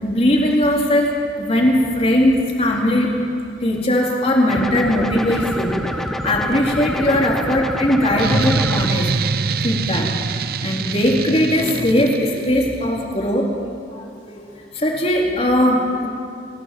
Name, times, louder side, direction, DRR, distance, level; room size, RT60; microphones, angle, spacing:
voice 1, 0.0-3.1 3.6-5.8 6.2-9.1 9.6-10.1 10.6-13.5 13.9-14.4 14.7-16.1, left 1 dB, 35° left, -1 dB, 4.0 m, -19 dB
sound 1, 4.5-8.9, equal, ahead, 1.2 m, -26 dB
sound 2, 8.2-12.6, right 4 dB, 60° right, 0.6 m, -24 dB
30.0 x 17.0 x 7.8 m, 2.4 s
head